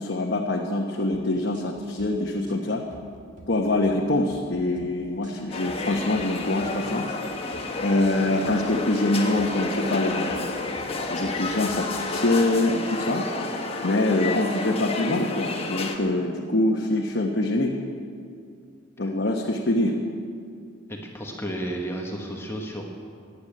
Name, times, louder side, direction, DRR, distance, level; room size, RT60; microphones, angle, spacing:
voice 1, 0.0-2.8 3.5-7.1 7.8-10.3 11.1-13.2 13.8-17.7 19.0-20.0, left 2 dB, 55° left, 0 dB, 1.1 m, -24 dB
sound 1, 1.1-1.3 1.5-2.1 2.4-2.6 2.9-3.5 3.8-4.0 4.3-4.9 5.2-5.4 5.7-6.3 6.6-6.8 7.1-7.6 8.0-8.2 8.4-9.0 9.4-9.6 9.8-10.4 10.8-10.9 11.2-11.8, right 1 dB, 40° right, 1.8 m, -48 dB
sound 2, 5.5-16.0, left 3 dB, 30° left, 1.3 m, -30 dB
voice 2, 20.9-22.9, right 1 dB, 10° left, 0 dB, 1.4 m, -33 dB
16.0 x 10.0 x 8.7 m, 2.3 s
head